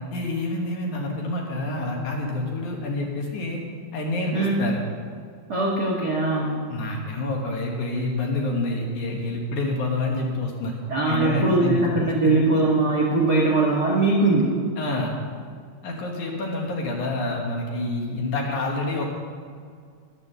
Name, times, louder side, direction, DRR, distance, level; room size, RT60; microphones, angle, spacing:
voice 1, 0.1-3.6 3.9-4.8 6.7-10.8 11.1-11.8 12.2-12.3 14.8-15.2 15.8-19.1, left 2 dB, 60° left, 0 dB, 2.4 m, -27 dB
voice 2, 4.3-4.6 5.5-6.6 10.9-14.5, right 2 dB, 60° right, -4 dB, 1.0 m, -21 dB
10.5 x 10.5 x 6.8 m, 2.1 s
omnidirectional pair, 4.6 m